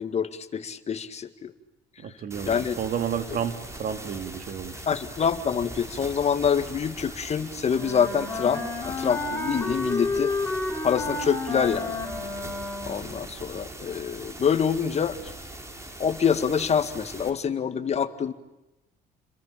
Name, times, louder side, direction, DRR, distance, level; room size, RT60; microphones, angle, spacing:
voice 1, 0.0-1.5 2.5-2.8 4.9-10.3 10.8-11.9 12.8-15.2 16.0-18.3, left 7 dB, 40° left, 10 dB, 2.0 m, -26 dB
voice 2, 2.0-4.8, right 8 dB, 60° right, 8 dB, 2.8 m, -31 dB
sound 1, 2.3-17.3, right 1 dB, 15° right, 5.2 m, -41 dB
Wind instrument woodwind instrument, 7.7-13.2, left 3 dB, 10° left, 7.2 m, -31 dB
30.0 x 22.5 x 8.7 m, 0.95 s
cardioid pair, 110°, 17 cm